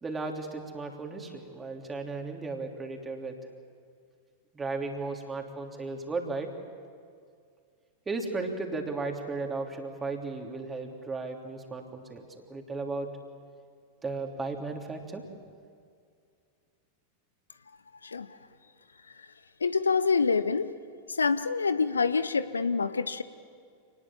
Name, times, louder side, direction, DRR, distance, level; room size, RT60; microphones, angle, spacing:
voice 1, 0.0-3.4 4.5-6.5 8.1-12.2 12.5-13.1 14.0-15.2, right 3 dB, 15° right, 3 dB, 3.3 m, -35 dB
voice 2, 19.6-20.7 21.1-23.2, left 5 dB, 75° left, 13 dB, 0.8 m, -26 dB
28.0 x 19.5 x 7.4 m, 2.2 s
figure-of-eight pair, 90°, 0 cm